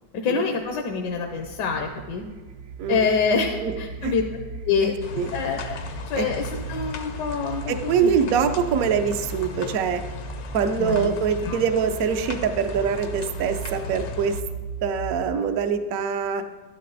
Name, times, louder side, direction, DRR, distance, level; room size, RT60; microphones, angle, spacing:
voice 1, 0.2-2.2 2.9-4.2 4.6-4.9 5.3-5.8 6.1-8.1 10.8-11.1 11.4-11.6, left 5 dB, 75° left, 3 dB, 1.5 m, -26 dB
sound 1, 0.6-15.5, right 3 dB, 90° right, 0.5 m, -37 dB
voice 2, 4.8-5.3 6.1-6.3 7.7-10.0 10.5-14.4 14.8-16.4, right 6 dB, 65° right, 8 dB, 1.0 m, -24 dB
sound 2, 5.0-14.4, left 6 dB, 55° left, 0.8 m, -38 dB
12.0 x 11.0 x 4.0 m, 1.4 s
omnidirectional pair, 1.9 m